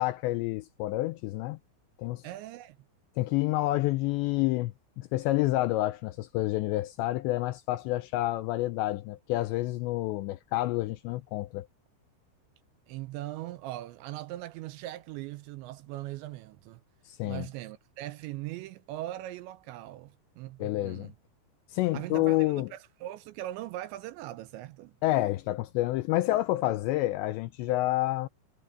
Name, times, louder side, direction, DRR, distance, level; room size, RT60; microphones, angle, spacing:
voice 1, 0.0-1.6 2.0-2.2 3.2-11.7 17.1-17.5 20.6-21.1 21.7-22.7 25.0-28.3, left 17 dB, 90° left, 2.6 m, -29 dB
voice 2, 2.2-2.8 12.9-16.8 17.2-21.1 21.9-24.9, right 15 dB, 85° right, 2.7 m, -40 dB
omnidirectional pair, 5.7 m